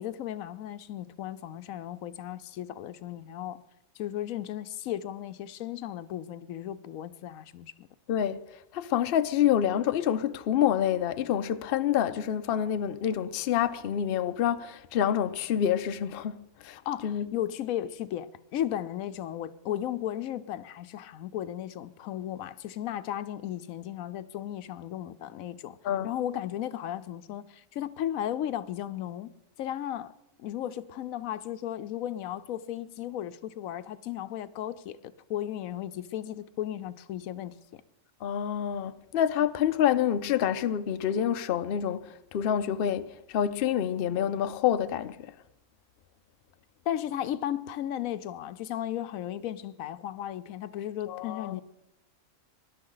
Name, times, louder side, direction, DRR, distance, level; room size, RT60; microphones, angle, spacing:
voice 1, 0.0-3.6 4.0-7.9 16.7-25.8 26.0-29.3 29.6-30.1 30.4-37.8 46.9-51.6, left 11 dB, 80° left, 1.0 m, -35 dB
voice 2, 8.1-8.4 8.7-16.4 16.6-17.3 25.8-26.1 38.2-45.3 51.1-51.6, left 10 dB, 55° left, 0.7 m, -27 dB
20.0 x 11.5 x 3.9 m
omnidirectional pair, 1.4 m